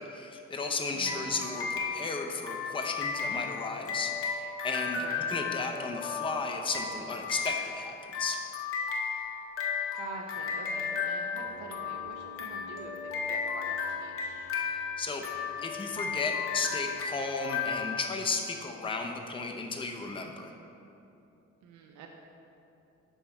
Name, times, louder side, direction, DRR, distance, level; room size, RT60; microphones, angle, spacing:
voice 1, 0.0-5.0 5.3-8.4 15.0-15.2 15.6-20.5, left 4 dB, 15° left, 3 dB, 0.6 m, -34 dB
voice 2, 0.9-1.3 5.0-5.3 9.9-14.5 21.6-22.1, right 4 dB, 75° right, 1 dB, 0.7 m, -46 dB
sound 1, 1.0-18.7, left 6 dB, 45° left, 0.9 m, -35 dB
Piano, 11.3-17.8, right 1 dB, 50° right, 0.9 m, -53 dB
5.8 x 5.6 x 4.3 m, 2.8 s
cardioid pair, 90°, 30 cm